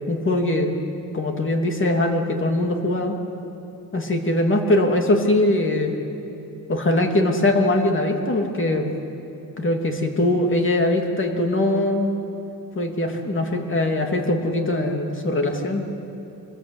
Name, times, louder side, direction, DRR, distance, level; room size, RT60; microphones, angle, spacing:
voice 1, 0.1-0.7 1.1-3.2 3.9-5.9 6.7-8.9 9.6-12.1 12.7-15.8, left 1 dB, 35° left, 3 dB, 2.8 m, -21 dB
26.0 x 21.0 x 8.5 m, 2.8 s
cardioid pair, 130°, 37 cm